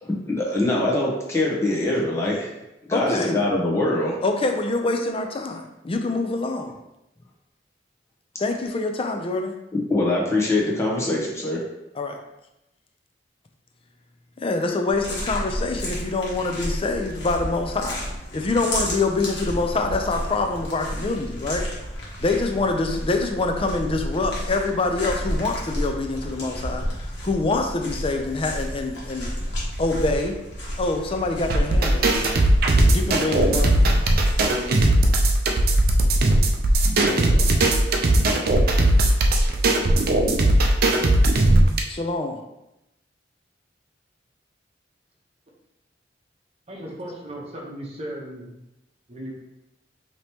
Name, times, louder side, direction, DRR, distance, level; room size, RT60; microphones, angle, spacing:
voice 1, 0.0-2.5 2.8-4.2 9.7-11.6, left 2 dB, 15° left, -4 dB, 1.0 m, -23 dB
voice 2, 2.9-3.4 4.2-6.7 8.4-9.6 11.9-12.2 14.4-18.0 18.3-21.7 22.2-29.3 29.8-30.3 30.8-32.1 32.9-33.7 37.0-37.5 41.9-42.4, left 3 dB, 30° left, 4 dB, 0.5 m, -25 dB
sound 1, 14.9-34.8, equal, 70° left, 1.3 m, -32 dB
sound 2, 31.5-41.8, right 1 dB, 55° right, 0.5 m, -18 dB
voice 3, 46.7-48.5 49.1-49.3, right 1 dB, 35° right, -2 dB, 0.9 m, -36 dB
5.1 x 2.9 x 2.9 m, 0.91 s
head